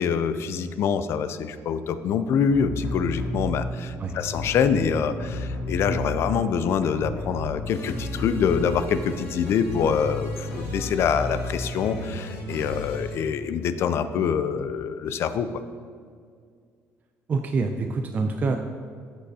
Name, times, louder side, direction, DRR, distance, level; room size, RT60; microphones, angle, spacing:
voice 1, 0.0-15.5, left 7 dB, 55° left, 12 dB, 0.4 m, -25 dB
sound 1, 2.5-3.6 4.1-6.5 6.8-13.1, left 1 dB, 70° left, 1.7 m, -33 dB
voice 2, 17.3-18.6, right 4 dB, 35° right, 5 dB, 0.4 m, -26 dB
10.0 x 6.3 x 2.8 m, 2.1 s
cardioid pair, 125°, 5 cm